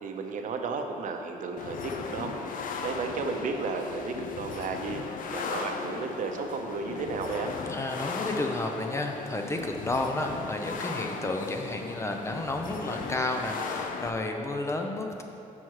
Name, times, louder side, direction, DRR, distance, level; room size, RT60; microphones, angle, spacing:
voice 1, 0.0-2.6 2.8-5.0 5.3-7.5, right 4 dB, 65° right, 4 dB, 0.6 m, -33 dB
sound 1, 1.6-14.1, left 5 dB, 70° left, 0.5 m, -37 dB
voice 2, 7.7-15.2, left 2 dB, 20° left, 3 dB, 0.5 m, -31 dB
6.2 x 5.6 x 4.6 m, 2.7 s
cardioid pair, 145°, 14 cm